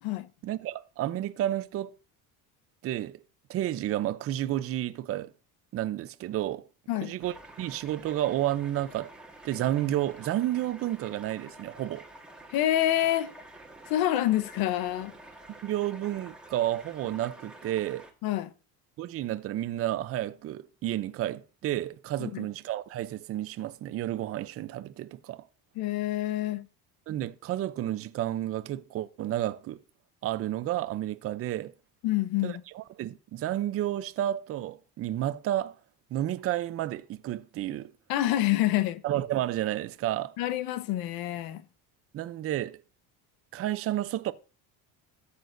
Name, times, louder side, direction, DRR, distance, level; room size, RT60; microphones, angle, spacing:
voice 1, 0.4-1.9 2.8-3.2 3.5-5.3 5.7-6.7 7.0-9.1 9.4-12.1 15.6-18.1 19.0-25.4 27.1-29.8 30.2-31.7 32.4-35.8 36.1-37.9 39.0-40.3 42.1-42.8 43.5-44.3, right 13 dB, 35° right, 0.6 m, -31 dB
sound 1, 7.2-18.1, right 2 dB, ahead, 1.6 m, -49 dB
voice 2, 12.5-13.3 13.9-15.1 18.2-18.5 22.2-22.5 25.7-26.7 32.0-32.6 38.1-39.0 40.4-41.6, left 13 dB, 70° left, 1.0 m, -27 dB
13.5 x 8.4 x 2.6 m
cardioid pair, 155°, 38 cm